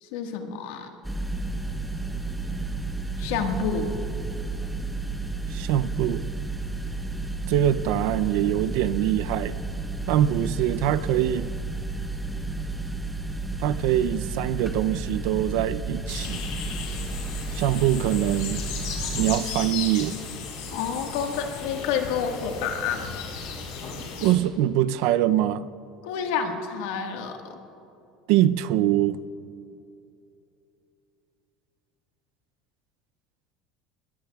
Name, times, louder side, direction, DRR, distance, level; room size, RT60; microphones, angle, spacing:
voice 1, 0.0-0.9 3.2-3.9 20.7-23.2 26.0-27.6, left 6 dB, 85° left, 4 dB, 1.5 m, -29 dB
sound 1, 1.0-19.4, right 3 dB, 5° right, 1.0 m, -32 dB
voice 2, 5.5-6.3 7.5-9.6 10.1-11.5 13.6-16.4 17.5-18.6 19.1-20.2 24.2-25.6 28.3-29.2, right 12 dB, 70° right, 14 dB, 0.5 m, -23 dB
sound 2, 16.1-24.3, left 5 dB, 70° left, 4.1 m, -35 dB
21.0 x 20.5 x 2.3 m, 2.8 s
cardioid pair, 150°, 0 cm